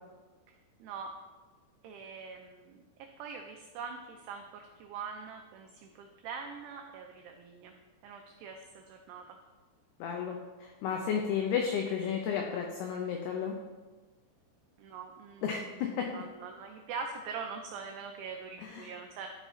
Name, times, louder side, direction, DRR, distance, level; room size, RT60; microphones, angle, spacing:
voice 1, 0.8-1.1 1.8-2.8 3.2-7.7 8.0-9.4 14.8-15.9 16.1-19.3, right 5 dB, 90° right, 3 dB, 2.3 m, -43 dB
voice 2, 10.0-13.5 15.4-16.1 18.6-18.9, left 7 dB, 90° left, 2 dB, 2.3 m, -33 dB
12.5 x 5.5 x 3.1 m, 1.3 s
omnidirectional pair, 5.5 m